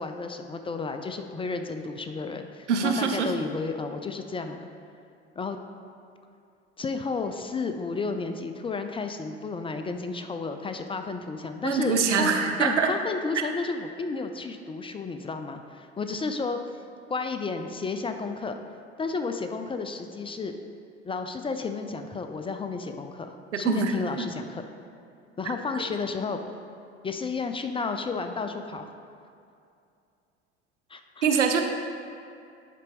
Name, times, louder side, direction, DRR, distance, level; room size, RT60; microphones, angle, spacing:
voice 1, 0.0-4.7 5.4-5.6 6.8-16.6 17.1-18.6 19.0-20.6 21.0-24.7 25.4-26.4 27.0-28.9 30.9-31.3, left 4 dB, 15° left, 7 dB, 0.4 m, -32 dB
voice 2, 2.7-3.3 11.6-12.9 23.5-23.9 31.2-31.6, right 6 dB, 90° right, 5 dB, 0.6 m, -24 dB
10.5 x 4.1 x 3.5 m, 2.5 s
hypercardioid pair, 65°, 34 cm